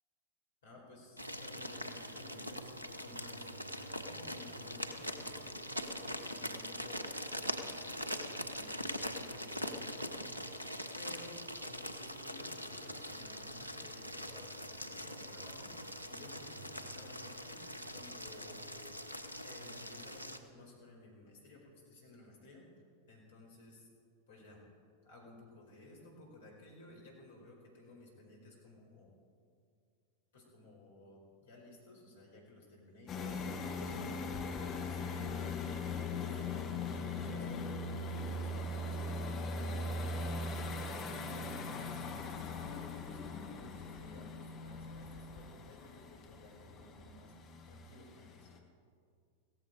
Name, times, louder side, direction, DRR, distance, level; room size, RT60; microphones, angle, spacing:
voice 1, 0.6-10.2 10.9-15.8 16.1-18.8 19.4-22.7 23.1-23.9 24.3-24.6 25.0-29.1 30.3-35.6 36.2-39.1 39.6-41.7 42.1-47.3 47.7-48.5, left 2 dB, 60° left, -1 dB, 4.5 m, -56 dB
sound 1, 1.2-20.4, equal, 85° right, 0.8 m, -42 dB
sound 2, 33.1-48.6, left 3 dB, 30° left, 1.5 m, -40 dB
16.5 x 14.5 x 4.8 m, 2.2 s
figure-of-eight pair, 90°, 0 cm